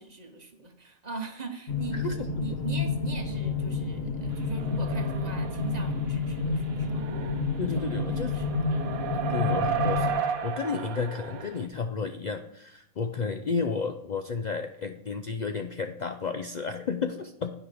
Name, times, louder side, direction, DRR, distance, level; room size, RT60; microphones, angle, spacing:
voice 1, 0.0-7.0 7.7-7.9 8.2-8.6 9.1-9.4, right 4 dB, 35° right, 5 dB, 1.0 m, -41 dB
sound 1, 1.7-10.1, left 4 dB, 50° left, 1.4 m, -29 dB
voice 2, 1.9-2.3 7.6-8.3 9.3-10.1 10.4-17.5, left 5 dB, 85° left, 7 dB, 0.4 m, -32 dB
sound 2, 4.6-6.0 6.5-11.7, right 8 dB, 85° right, 1.3 m, -34 dB
10.5 x 10.0 x 3.4 m, 0.77 s
omnidirectional pair, 1.4 m